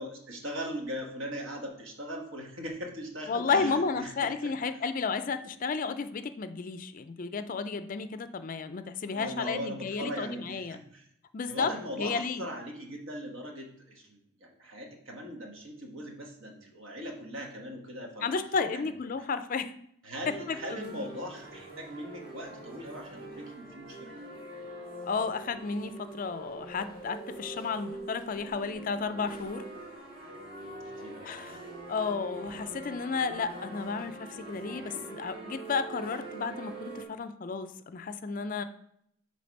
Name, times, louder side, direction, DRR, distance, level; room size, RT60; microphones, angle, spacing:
voice 1, 0.0-4.5 9.1-11.0 11.5-18.3 18.7-18.9 19.2-19.3 20.0-24.1 31.0-31.5, equal, 65° right, 1 dB, 1.4 m, -40 dB
voice 2, 3.3-10.8 11.3-12.5 18.2-19.7 20.3-21.0 25.1-29.6 31.2-31.6 31.9-38.6, left 5 dB, 40° left, 11 dB, 0.4 m, -32 dB
sound 1, 20.2-37.0, right 2 dB, 45° right, 2.8 m, -44 dB
7.7 x 3.2 x 5.2 m, 0.72 s
head